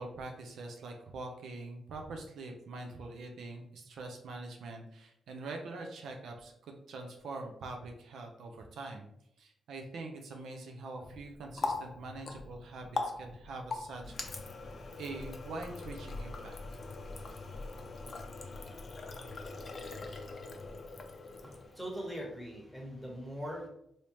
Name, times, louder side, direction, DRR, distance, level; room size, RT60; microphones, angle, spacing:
voice 1, 0.0-9.1 9.4-14.1 15.0-16.6, right 3 dB, 75° right, 3 dB, 0.5 m, -44 dB
Water tap faucet, 11.1-21.8, left 3 dB, 50° left, 0.5 m, -41 dB
voice 2, 21.4-23.7, equal, 5° right, -2 dB, 1.2 m, -41 dB
3.3 x 2.7 x 3.0 m, 0.75 s
cardioid pair, 70°, 0 cm